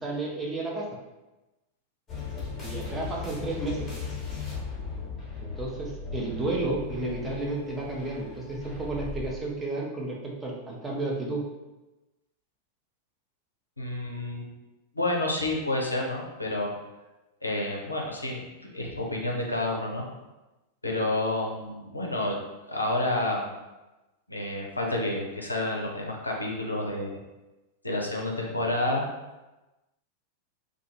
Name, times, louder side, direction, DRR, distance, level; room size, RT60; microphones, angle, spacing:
voice 1, 0.0-0.8 2.6-3.9 5.4-11.4, right 2 dB, 10° right, -3 dB, 0.6 m, -32 dB
sound 1, 2.1-9.3, left 5 dB, 20° left, 1.0 m, -37 dB
voice 2, 13.8-14.5 14.9-16.7 17.4-18.4 18.7-20.0 20.8-22.4 22.7-23.6 24.3-27.2 27.8-29.0, left 1 dB, 85° left, 0 dB, 0.4 m, -29 dB
2.3 x 2.3 x 2.8 m, 1.1 s
figure-of-eight pair, 90°, 0 cm